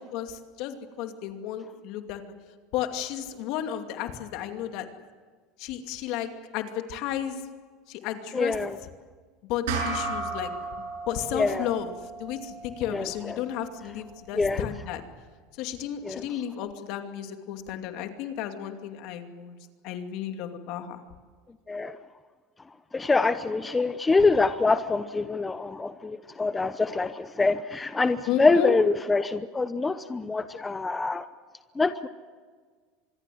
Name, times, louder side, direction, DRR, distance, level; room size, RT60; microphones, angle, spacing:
voice 1, 0.0-2.2 2.7-4.9 5.6-7.4 7.9-8.5 9.5-10.5 11.1-11.9 12.2-15.0 15.6-19.6 19.8-21.0 28.3-28.7, left 10 dB, 65° left, 6 dB, 2.5 m, -33 dB
voice 2, 8.3-8.8 11.3-11.7 12.8-13.4 14.3-14.7 16.0-16.2 21.7-22.0 22.9-31.3 31.8-32.1, left 3 dB, 15° left, 12 dB, 0.8 m, -25 dB
sound 1, 9.7-14.4, right 4 dB, 85° right, 6.4 m, -35 dB
25.5 x 21.5 x 7.9 m, 1.5 s
supercardioid pair, 115°, 0 cm